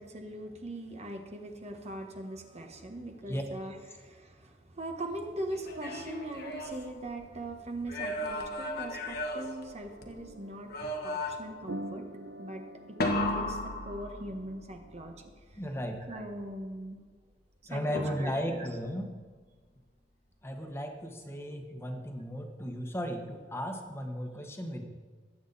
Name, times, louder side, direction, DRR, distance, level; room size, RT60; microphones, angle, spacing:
voice 1, 0.0-12.1 12.4-12.6 12.9-13.6 13.8-15.1 15.5-15.6 16.1-17.0 17.7-18.7, right 1 dB, 35° right, 3 dB, 1.3 m, -41 dB
sound 1, 5.5-7.4 7.8-10.3 10.7-11.7 13.0-14.6 18.0-18.6, left 1 dB, 60° left, 1.4 m, -35 dB
sound 2, 9.9-15.3, right 1 dB, 65° right, 0.9 m, -46 dB
voice 2, 15.6-16.0 17.7-19.1 20.4-24.9, equal, 15° left, 3 dB, 1.4 m, -35 dB
20.0 x 8.6 x 4.2 m, 1.4 s
head